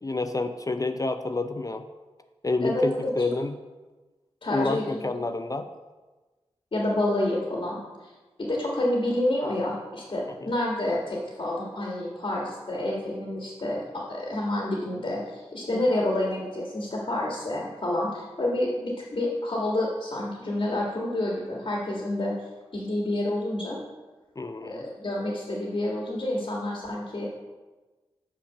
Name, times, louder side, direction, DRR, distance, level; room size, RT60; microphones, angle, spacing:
voice 1, 0.0-1.9 2.4-3.5 4.5-5.7 10.4-10.5 15.7-15.8 24.4-24.9, left 2 dB, 35° left, 9 dB, 0.5 m, -28 dB
voice 2, 2.6-3.1 4.4-5.3 6.7-8.1 8.4-22.5 22.7-23.8 24.6-27.3, left 1 dB, 55° left, -3 dB, 1.6 m, -28 dB
5.8 x 5.0 x 6.5 m, 1.2 s
cardioid pair, 40°, 11 cm